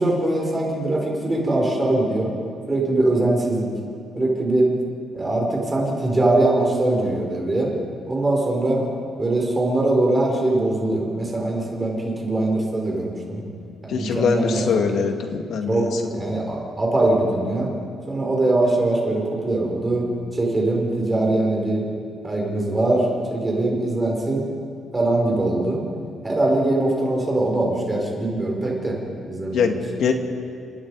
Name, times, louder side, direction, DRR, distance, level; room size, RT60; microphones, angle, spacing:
voice 1, 0.0-2.3 2.7-3.7 4.1-4.7 5.1-7.7 8.1-8.9 9.2-13.4 13.8-15.0 15.7-17.7 18.1-21.8 22.2-24.5 24.9-25.8 26.2-29.0 29.3-29.8, right 2 dB, 15° right, -1 dB, 5.0 m, -22 dB
voice 2, 13.9-16.0 29.5-30.1, left 6 dB, 60° left, 4 dB, 2.4 m, -23 dB
29.5 x 27.5 x 5.0 m, 2.4 s
cardioid pair, 170°, 0 cm